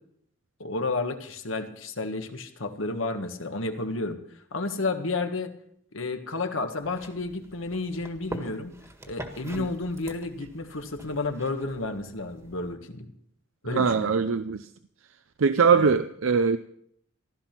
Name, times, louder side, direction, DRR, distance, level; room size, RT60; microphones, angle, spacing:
voice 1, 0.6-4.2 4.5-5.5 5.9-8.7 9.0-13.1 13.6-14.1 15.7-15.9, left 3 dB, 75° left, 6 dB, 1.6 m, -31 dB
sound 1, 6.8-12.7, right 1 dB, 15° right, 1.6 m, -44 dB
voice 2, 13.7-14.7 15.4-16.6, right 5 dB, 75° right, 11 dB, 0.6 m, -22 dB
15.5 x 12.5 x 5.9 m, 0.69 s
head